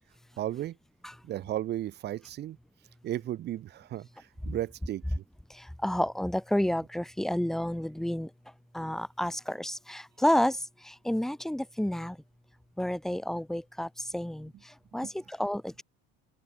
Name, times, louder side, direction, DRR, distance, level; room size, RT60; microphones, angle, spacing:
voice 1, 0.4-0.8 1.2-2.6 3.0-5.2, right 13 dB, 30° right, 2.6 m, -35 dB
voice 2, 5.5-8.3 8.7-12.2 12.8-15.8, left 1 dB, ahead, 1.5 m, -30 dB
open air
cardioid pair, 175°, 31 cm